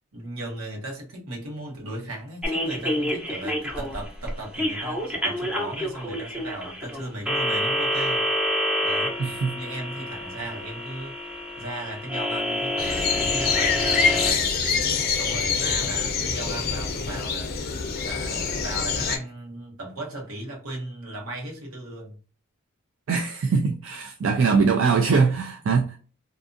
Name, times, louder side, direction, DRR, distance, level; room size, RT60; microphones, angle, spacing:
voice 1, 0.1-8.3 8.8-9.2 9.5-11.1 11.6-14.8 15.1-17.5 18.0-22.2 24.2-24.5, right 1 dB, 80° right, 1.1 m, -36 dB
sound 1, 2.4-14.3, equal, 5° right, 0.6 m, -28 dB
voice 2, 9.2-9.6 23.1-26.0, right 5 dB, 60° right, 0.3 m, -22 dB
sound 2, 12.8-19.2, left 5 dB, 45° left, 0.5 m, -25 dB
2.6 x 2.4 x 2.5 m
head